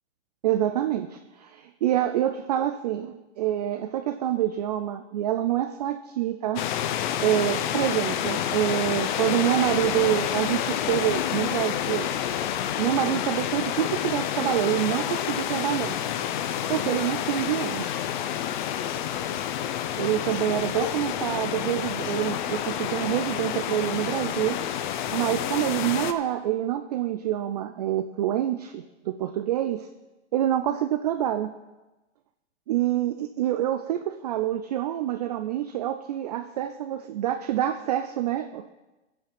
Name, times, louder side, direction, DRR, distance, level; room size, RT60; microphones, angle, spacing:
voice 1, 0.4-6.6 7.2-12.1 12.8-16.0 16.7-17.9 20.0-24.6 25.1-29.9 30.3-31.6 32.7-38.7, right 12 dB, 35° right, 10 dB, 0.4 m, -26 dB
sound 1, 6.6-26.1, left 10 dB, 40° left, 0.7 m, -29 dB
15.0 x 5.7 x 5.9 m, 1.1 s
hypercardioid pair, 145°, 36 cm